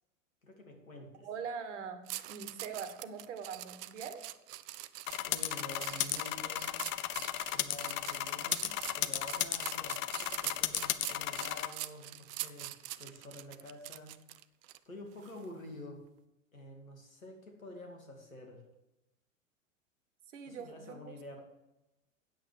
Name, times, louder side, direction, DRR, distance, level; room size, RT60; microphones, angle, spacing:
voice 1, 0.4-1.3 5.2-6.8 7.2-12.7 13.0-14.1 14.9-16.0 16.5-18.6 20.5-21.4, left 1 dB, 85° left, 2 dB, 2.5 m, -49 dB
voice 2, 1.2-4.2 20.3-21.4, right 6 dB, 60° right, 8 dB, 1.6 m, -43 dB
sound 1, 2.1-14.8 15.2-15.4, right 16 dB, 45° right, 0.6 m, -44 dB
sound 2, 5.1-11.7, left 13 dB, 30° left, 0.5 m, -35 dB
9.0 x 7.8 x 6.4 m, 0.95 s
figure-of-eight pair, 90°, 40 cm